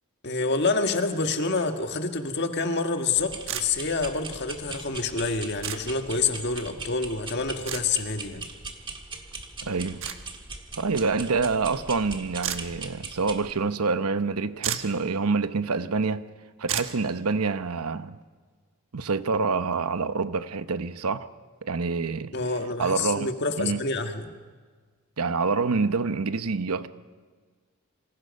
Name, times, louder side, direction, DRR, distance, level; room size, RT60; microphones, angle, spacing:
voice 1, 0.2-8.5 22.3-24.3, left 3 dB, 50° left, 1.7 m, -27 dB
sound 1, 3.2-13.5, right 3 dB, 20° right, 1.6 m, -40 dB
sound 2, 3.5-3.7 5.6-5.8 7.7-7.8 10.0-10.2 12.4-12.6 14.3-14.4 14.6-15.0 16.7-17.0, right 9 dB, 60° right, 1.4 m, -30 dB
voice 2, 9.6-10.0 10.8-16.2 16.6-18.2 18.9-21.3 21.6-22.3 22.8-23.3 23.6-23.8 25.2-26.9, right 4 dB, 90° right, 0.9 m, -27 dB
27.5 x 25.5 x 5.5 m
head